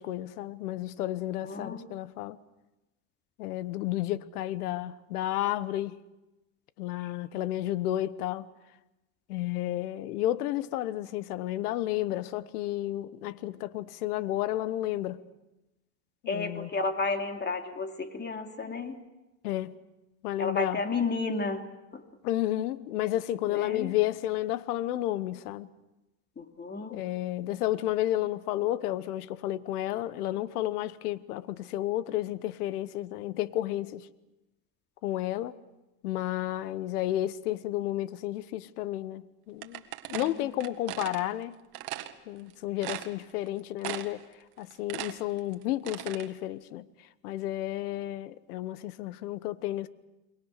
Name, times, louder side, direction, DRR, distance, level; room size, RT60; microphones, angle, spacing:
voice 1, 0.0-2.4 3.4-6.0 6.8-8.5 9.3-15.2 16.2-16.7 19.4-19.7 20.2-20.8 22.2-25.7 26.9-34.1 35.0-35.6 36.0-39.8 40.1-41.6 42.3-44.2 44.6-46.9 47.2-49.9, left 14 dB, 90° left, 1.1 m, -32 dB
voice 2, 1.4-1.9 16.3-19.0 20.4-21.6 21.9-22.0 23.5-23.9 26.4-27.0, left 3 dB, 25° left, 2.9 m, -32 dB
sound 1, 39.6-41.2 41.7-42.1 42.5-42.6 42.8-43.5 43.8-44.3 44.6-46.3, right 15 dB, 60° right, 1.9 m, -38 dB
29.0 x 22.5 x 6.6 m
supercardioid pair, 105°, 44 cm